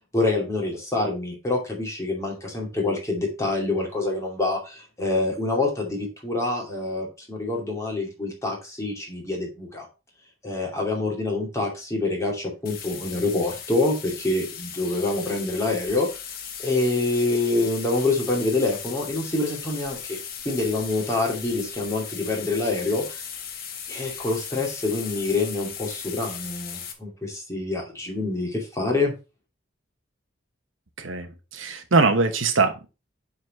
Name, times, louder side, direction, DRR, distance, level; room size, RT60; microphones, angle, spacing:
voice 1, 0.1-9.9 10.4-16.1 16.6-20.2 20.4-23.3 23.9-29.1, left 2 dB, 15° left, -1 dB, 2.5 m, -26 dB
sound 1, 12.7-26.9, left 7 dB, 50° left, 1.3 m, -37 dB
voice 2, 31.0-32.9, right 3 dB, 85° right, 6 dB, 1.1 m, -22 dB
7.7 x 4.1 x 5.3 m, 0.30 s
head